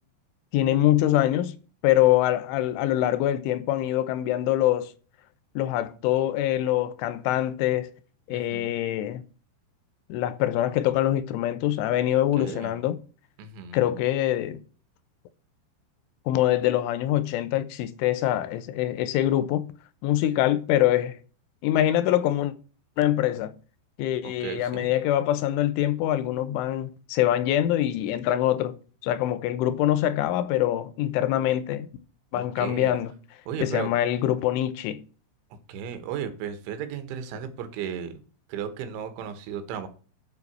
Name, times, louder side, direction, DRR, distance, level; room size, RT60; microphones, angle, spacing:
voice 1, 0.5-1.5 1.8-4.9 5.6-7.9 8.3-9.2 10.1-13.0 13.7-14.6 16.3-19.7 20.0-21.2 21.6-22.5 23.0-23.5 24.0-28.8 29.0-31.9 32.3-33.1 33.6-35.0, left 13 dB, 85° left, 3.3 m, -24 dB
voice 2, 8.3-8.7 12.4-12.7 13.4-13.8 24.2-24.9 32.3-32.9 33.5-33.9 35.7-38.2 38.5-39.9, right 8 dB, 80° right, 3.7 m, -35 dB
8.2 x 7.1 x 6.0 m
omnidirectional pair, 5.4 m